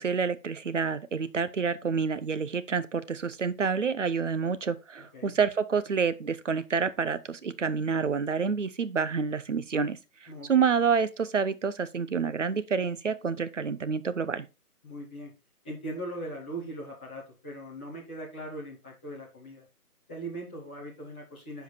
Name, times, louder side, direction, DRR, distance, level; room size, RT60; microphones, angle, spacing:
voice 1, 0.0-10.0 10.4-14.5, right 6 dB, 50° right, 0.9 m, -28 dB
voice 2, 14.8-15.3 15.6-19.6 20.1-21.6, right 1 dB, 5° left, 0.9 m, -40 dB
10.5 x 5.2 x 4.1 m
figure-of-eight pair, 155°, 47 cm